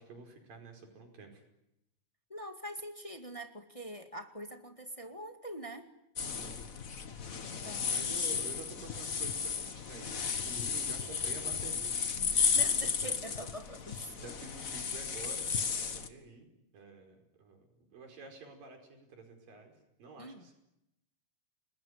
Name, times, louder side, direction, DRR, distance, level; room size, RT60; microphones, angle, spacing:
voice 1, 0.0-1.4 6.4-6.7 7.9-11.9 12.3-12.7 13.0-13.1 14.1-16.5 16.7-20.5, right 4 dB, 85° right, 4 dB, 6.7 m, -49 dB
voice 2, 2.3-5.9 7.4-8.2 12.3-14.1 20.2-20.5, right 1 dB, 15° left, 5 dB, 1.3 m, -44 dB
sound 1, 6.2-16.1, left 6 dB, 50° left, 0.9 m, -34 dB
28.5 x 21.0 x 9.8 m, 0.86 s
omnidirectional pair, 3.8 m